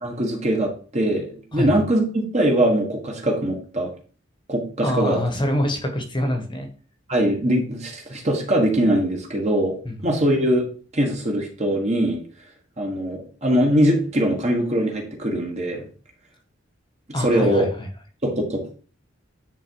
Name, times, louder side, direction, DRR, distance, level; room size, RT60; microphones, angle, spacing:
voice 1, 0.0-2.0 2.3-3.9 4.5-5.2 7.1-9.7 10.0-10.6 10.9-12.2 12.8-15.9 17.2-17.7 18.2-18.8, right 1 dB, 35° right, 0 dB, 1.6 m, -22 dB
voice 2, 4.8-6.7 9.8-10.2 17.1-17.9, left 1 dB, 25° left, 5 dB, 1.3 m, -25 dB
9.9 x 3.7 x 4.7 m, 0.41 s
head